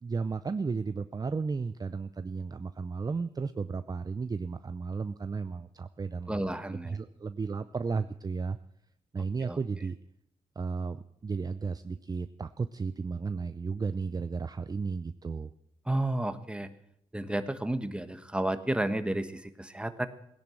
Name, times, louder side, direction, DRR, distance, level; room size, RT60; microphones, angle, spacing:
voice 1, 0.0-6.4 6.7-8.6 9.1-10.0 10.6-15.5, right 4 dB, 30° right, 11 dB, 0.6 m, -34 dB
voice 2, 6.3-7.0 9.4-9.6 15.9-16.7 17.1-20.1, right 1 dB, 10° right, 10 dB, 1.3 m, -31 dB
17.0 x 10.5 x 7.7 m, 0.74 s
cardioid pair, 75°, 13 cm